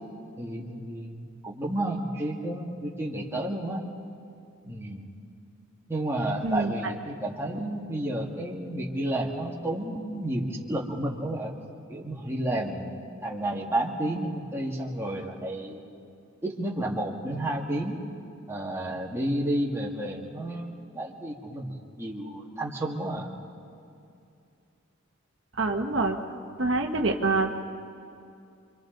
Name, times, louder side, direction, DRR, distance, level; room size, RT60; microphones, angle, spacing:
voice 1, 0.4-3.8 4.6-5.1 5.9-11.5 11.9-15.8 16.4-18.0 18.5-23.3, right 1 dB, 10° right, -2 dB, 2.0 m, -31 dB
voice 2, 6.4-6.7 25.6-26.2 26.6-27.6, right 3 dB, 65° right, 3 dB, 1.3 m, -25 dB
29.0 x 25.0 x 4.0 m, 2.5 s
head